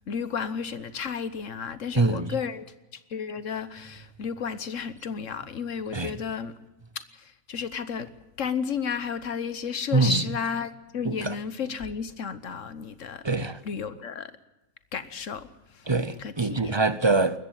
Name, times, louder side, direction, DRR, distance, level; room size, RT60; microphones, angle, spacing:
voice 1, 0.0-2.7 2.9-6.5 6.9-8.1 8.4-13.3 13.6-14.3 14.9-15.9 16.2-16.7, left 6 dB, 65° left, 1.4 m, -33 dB
voice 2, 1.9-2.4 5.9-6.1 9.9-10.4 11.0-11.4 13.2-13.6 15.9-17.4, right 3 dB, 25° right, 0.7 m, -24 dB
20.0 x 15.0 x 9.0 m
omnidirectional pair, 1.4 m